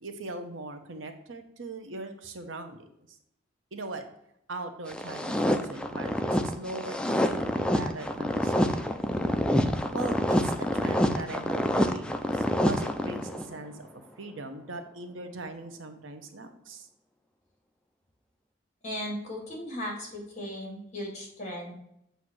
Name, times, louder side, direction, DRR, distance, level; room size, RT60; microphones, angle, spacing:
voice 1, 0.0-3.2 3.7-4.0 4.5-9.0 9.9-13.9 14.2-16.9, right 2 dB, 85° right, 6 dB, 0.9 m, -40 dB
sound 1, 4.9-13.5, equal, 5° left, 0.4 m, -27 dB
voice 2, 18.8-21.7, left 1 dB, 40° left, -2 dB, 2.4 m, -37 dB
7.9 x 2.8 x 6.1 m, 0.77 s
head